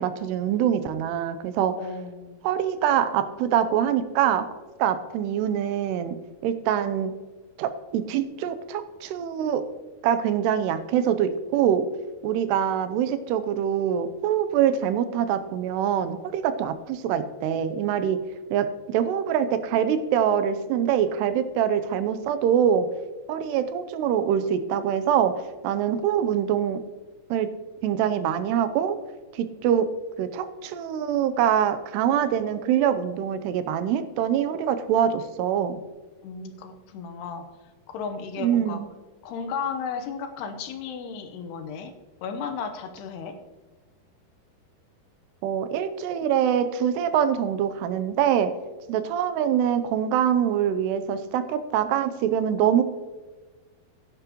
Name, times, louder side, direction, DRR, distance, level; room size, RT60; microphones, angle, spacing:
voice 1, 0.0-1.7 2.4-4.5 4.8-6.2 6.4-7.1 7.6-9.6 10.0-11.9 12.2-18.2 18.5-22.9 23.3-26.8 27.3-27.5 27.8-29.0 29.3-29.9 30.2-35.8 38.4-38.9 45.4-48.5 48.9-52.8, right 9 dB, 85° right, 11 dB, 2.8 m, -24 dB
voice 2, 1.8-2.4 36.2-37.5 37.9-38.8 39.2-41.9 42.2-43.4, left 6 dB, 80° left, 7 dB, 3.0 m, -34 dB
15.0 x 10.5 x 3.0 m, 1.3 s
omnidirectional pair, 4.7 m